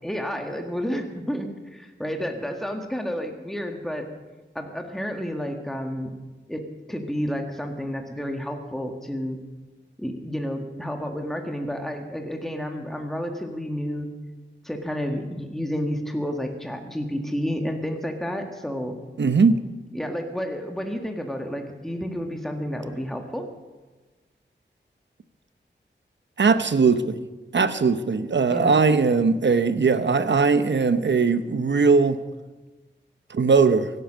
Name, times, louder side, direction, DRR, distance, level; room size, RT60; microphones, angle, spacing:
voice 1, 0.0-4.1 4.6-6.1 6.5-9.4 10.0-14.2 14.6-19.0 19.9-23.5 28.5-28.8, equal, ahead, 3 dB, 1.7 m, -30 dB
voice 2, 19.2-19.6 26.4-27.2 27.5-32.2 33.3-33.9, right 4 dB, 70° right, 12 dB, 0.9 m, -20 dB
16.5 x 12.0 x 6.3 m, 1.2 s
wide cardioid pair, 75°, 19 cm